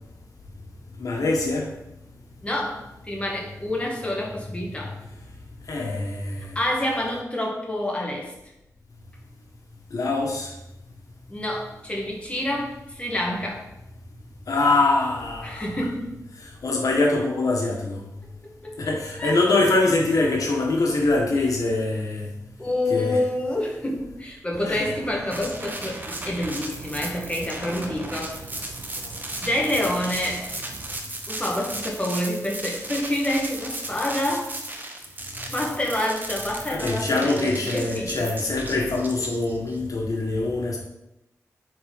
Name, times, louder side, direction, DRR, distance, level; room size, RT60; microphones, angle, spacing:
voice 1, 1.0-1.7 2.2-2.3 5.1-5.2 5.6-6.6 9.9-10.5 14.5-15.8 16.4-18.1 18.8-22.3 22.9-23.2 24.6-24.9 36.7-40.8, left 2 dB, 70° left, -1 dB, 1.7 m, -24 dB
voice 2, 2.4-5.0 6.6-8.3 11.3-13.7 15.4-16.1 18.6-18.8 19.2-19.3 22.6-28.3 29.4-30.5 31.3-34.5 35.5-38.3, left 1 dB, 20° left, -1 dB, 1.9 m, -27 dB
sound 1, 24.5-31.0, right 3 dB, 65° right, 1.0 m, -42 dB
sound 2, 25.3-39.8, right 2 dB, 30° right, 1.1 m, -35 dB
8.7 x 4.4 x 5.5 m, 0.89 s
wide cardioid pair, 125°, 6 cm